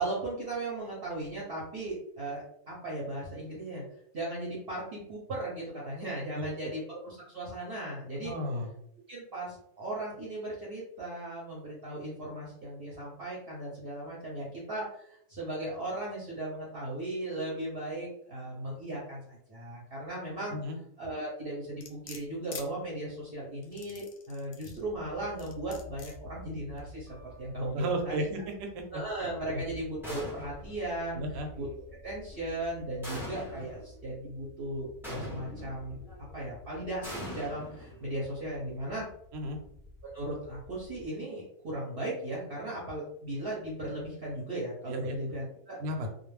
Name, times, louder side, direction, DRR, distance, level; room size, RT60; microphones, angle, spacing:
voice 1, 0.0-3.8 4.1-8.3 9.1-20.5 21.0-27.1 27.4-28.2 28.9-31.2 31.5-31.7 32.0-36.0 36.3-39.1 40.1-45.8, right 1 dB, 50° right, -5 dB, 0.8 m, -37 dB
voice 2, 8.1-8.7 20.5-20.8 27.7-28.8 29.5-29.6 31.1-31.5 39.3-39.6 44.9-45.2 45.8-46.1, equal, 75° right, 3 dB, 1.0 m, -34 dB
sound 1, 21.8-22.7 23.6-24.8 25.4-26.2 26.8-26.9, left 6 dB, 65° left, 0.8 m, -45 dB
sound 2, 24.7-41.1, left 3 dB, 20° left, 0.9 m, -51 dB
sound 3, 30.0-30.8 33.0-33.8 35.0-35.8 37.0-38.2, equal, 5° right, 0.3 m, -41 dB
2.4 x 2.1 x 3.2 m, 0.72 s
omnidirectional pair, 1.5 m